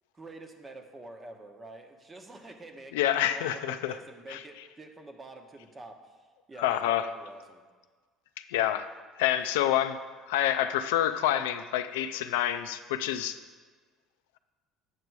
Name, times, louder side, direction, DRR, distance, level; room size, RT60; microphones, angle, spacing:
voice 1, 0.1-6.0 6.5-7.6, right 2 dB, 25° right, 5 dB, 1.0 m, -47 dB
voice 2, 2.9-4.0 4.3-4.4 6.6-7.1 8.5-8.9 9.2-10.0 10.3-13.4, left 11 dB, 90° left, 10 dB, 0.3 m, -27 dB
8.2 x 5.2 x 4.6 m, 1.4 s
supercardioid pair, 85°, 0 cm